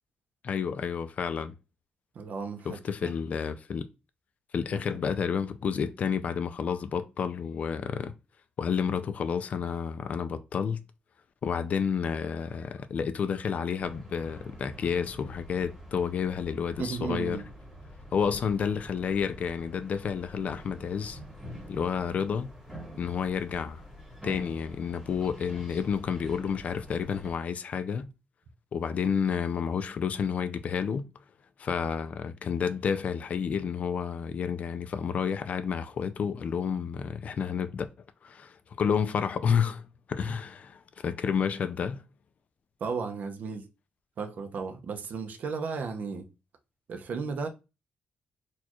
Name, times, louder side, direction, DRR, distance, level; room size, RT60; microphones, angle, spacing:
voice 1, 0.4-1.5 2.7-3.9 4.5-8.1 8.6-10.8 11.4-17.4 18.1-21.2 21.7-22.5 23.0-23.8 24.2-28.1 28.7-31.1 31.6-37.9 38.2-42.0, left 7 dB, 50° left, 0.4 m, -30 dB
voice 2, 2.1-3.1 4.7-4.8 16.8-17.5 40.3-40.4 42.8-43.7 44.2-46.3 46.9-47.5, right 5 dB, 60° right, 0.6 m, -34 dB
sound 1, 13.7-27.3, equal, 10° right, 1.2 m, -47 dB
4.2 x 2.3 x 2.9 m
wide cardioid pair, 160°, 3 cm